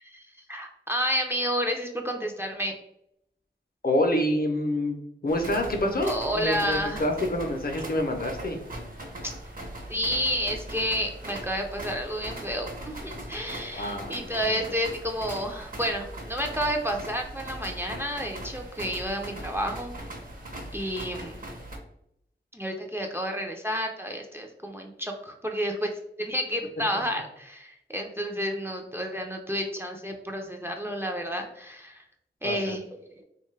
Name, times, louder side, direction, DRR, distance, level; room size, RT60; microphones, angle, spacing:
voice 1, 0.0-2.7 6.1-7.1 9.2-9.3 9.9-20.0 20.7-21.5 22.5-25.9 26.2-32.0 32.4-33.0, equal, 10° right, 3 dB, 0.4 m, -30 dB
voice 2, 3.8-5.0 5.2-8.6 13.7-14.6 26.9-27.0 32.4-32.7, left 1 dB, 50° left, 4 dB, 0.6 m, -27 dB
sound 1, 5.3-21.8, right 1 dB, 50° right, 0.7 m, -40 dB
2.7 x 2.3 x 3.1 m, 0.77 s
wide cardioid pair, 65°, 19 cm